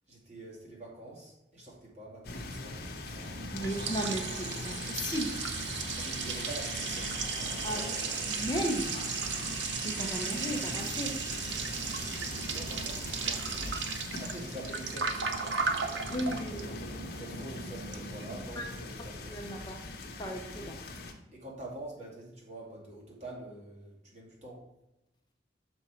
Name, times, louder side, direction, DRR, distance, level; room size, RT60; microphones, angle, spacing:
voice 1, 0.1-4.0 5.9-7.2 7.5-8.3 11.8-13.8 14.2-16.0 17.2-19.3 21.3-24.6, right 1 dB, 40° right, -3 dB, 2.3 m, -46 dB
sound 1, 2.2-21.1, left 3 dB, 55° left, 1.0 m, -41 dB
Liquid, 3.2-18.4, right 6 dB, 85° right, 0.7 m, -36 dB
voice 2, 3.5-5.3 7.6-7.8 8.3-9.6 9.8-11.1 12.0-12.1 16.1-16.7 18.6-18.7 19.3-19.8 20.2-20.8, equal, 25° left, 1 dB, 0.7 m, -35 dB
sound 2, 10.2-14.7, equal, 20° right, 1.1 m, -44 dB
6.1 x 5.3 x 4.4 m, 0.92 s
head